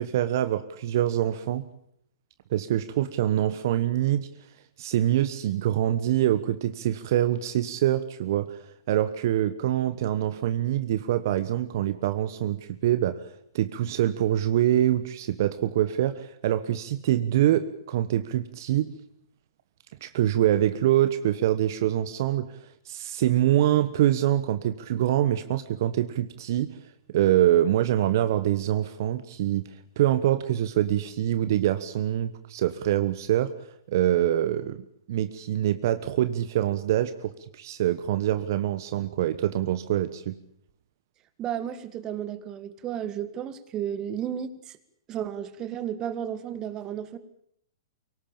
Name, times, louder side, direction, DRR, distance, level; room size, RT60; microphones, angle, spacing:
voice 1, 0.0-1.6 2.5-4.3 4.8-8.6 8.9-13.2 13.5-18.9 20.0-22.5 22.9-26.8 27.1-29.6 30.0-33.5 33.9-34.8 35.1-40.3, right 12 dB, 55° right, 12 dB, 1.2 m, -25 dB
voice 2, 41.4-44.8 45.1-47.2, right 9 dB, 30° right, 13 dB, 1.9 m, -33 dB
23.5 x 18.5 x 8.9 m, 0.70 s
hypercardioid pair, 125°, 2 cm